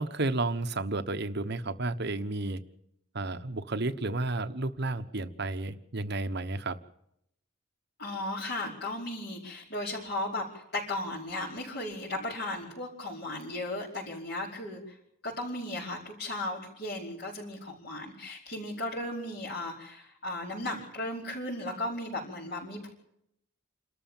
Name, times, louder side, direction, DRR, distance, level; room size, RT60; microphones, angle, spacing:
voice 1, 0.0-2.6 3.1-6.8, right 2 dB, 55° right, 10 dB, 1.1 m, -32 dB
voice 2, 8.0-14.9 15.2-22.9, left 1 dB, 55° left, -7 dB, 5.0 m, -36 dB
28.5 x 13.5 x 7.3 m, 0.76 s
head